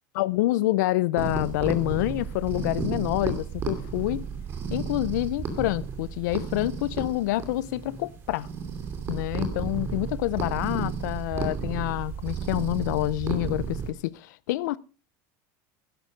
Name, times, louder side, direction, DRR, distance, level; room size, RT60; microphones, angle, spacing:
voice 1, 0.1-4.2 4.7-8.5 9.1-14.8, left 17 dB, 80° left, 0.6 m, -27 dB
sound 1, 1.2-13.9, right 5 dB, 25° right, 2.6 m, -33 dB
13.0 x 11.5 x 5.1 m
cardioid pair, 180°, 10 cm